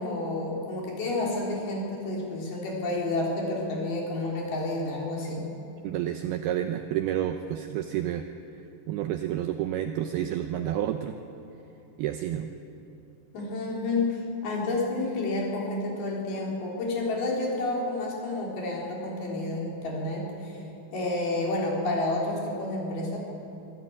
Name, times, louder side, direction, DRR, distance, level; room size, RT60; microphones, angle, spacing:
voice 1, 0.0-5.5 13.3-20.6 20.9-23.2, left 2 dB, 55° left, -2 dB, 5.3 m, -30 dB
voice 2, 5.8-8.3 8.9-11.2 12.0-12.5, right 11 dB, 85° right, 7 dB, 2.3 m, -29 dB
24.5 x 14.5 x 8.7 m, 2.8 s
omnidirectional pair, 5.3 m